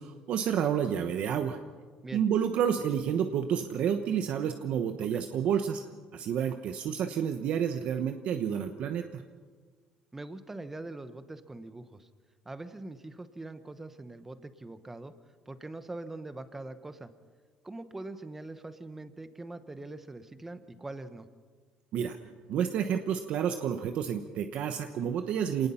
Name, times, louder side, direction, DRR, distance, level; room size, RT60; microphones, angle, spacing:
voice 1, 0.0-1.6 2.1-5.8 6.1-9.2 21.9-22.2 22.5-25.7, right 8 dB, 55° right, 7 dB, 1.0 m, -30 dB
voice 2, 10.1-12.1 12.4-15.1 15.5-17.1 17.6-21.3, right 2 dB, 10° right, 11 dB, 1.0 m, -43 dB
26.5 x 19.0 x 5.7 m, 1.5 s
cardioid pair, 150°, 3 cm